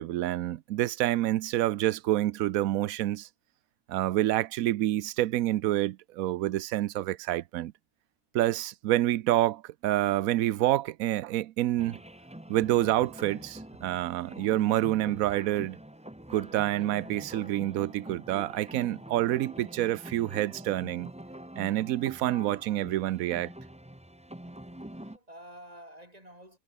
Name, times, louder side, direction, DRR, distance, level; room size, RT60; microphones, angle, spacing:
voice 1, 0.0-3.3 3.9-7.7 8.3-12.0 12.5-15.8 16.3-21.1 21.6-23.5, right 14 dB, 70° right, 1.0 m, -28 dB
sound 1, 11.8-25.2, right 1 dB, 5° right, 1.0 m, -45 dB
voice 2, 24.4-26.6, right 1 dB, 25° right, 7.6 m, -50 dB
omnidirectional pair, 1.7 m